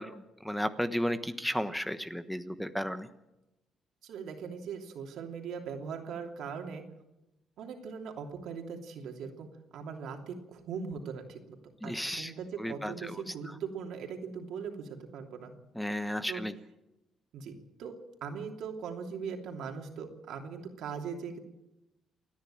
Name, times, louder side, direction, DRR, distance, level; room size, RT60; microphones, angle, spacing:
voice 1, 0.0-3.1 11.8-12.3 12.6-13.1 15.8-16.5, equal, 5° left, 11 dB, 1.1 m, -33 dB
voice 2, 4.0-6.8 7.6-9.5 9.7-11.6 11.8-15.5 16.3-16.4 17.3-17.9 18.2-21.4, right 6 dB, 80° right, 3 dB, 2.9 m, -40 dB
29.0 x 10.5 x 8.8 m, 0.94 s
cardioid pair, 105°, 0 cm